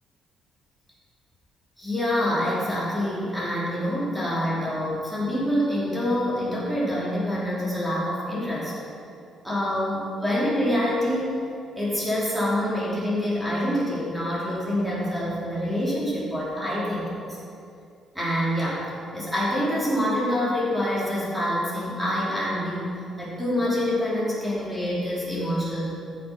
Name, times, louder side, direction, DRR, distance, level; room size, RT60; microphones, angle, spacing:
voice 1, 1.8-8.7 9.4-11.5 11.8-17.4 18.1-18.9 19.1-25.9, equal, ahead, -8 dB, 3.4 m, -26 dB
14.5 x 6.8 x 5.9 m, 2.5 s
cardioid pair, 145°, 0 cm